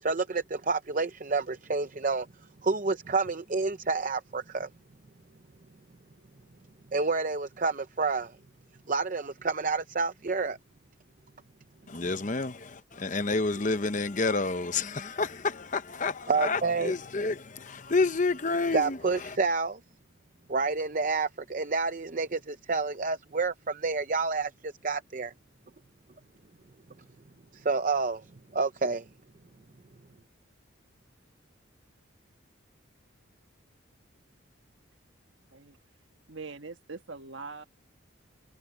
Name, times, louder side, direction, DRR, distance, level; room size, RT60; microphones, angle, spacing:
voice 1, 0.0-2.3 2.6-4.7 6.9-8.3 8.9-10.6 16.3-16.9 18.7-19.8 20.5-25.3 27.5-28.3 28.5-29.1, right 4 dB, 40° right, 0.7 m, -29 dB
voice 2, 11.9-19.4, left 3 dB, 35° left, 0.8 m, -29 dB
voice 3, 36.3-37.6, right 4 dB, 65° right, 1.6 m, -42 dB
head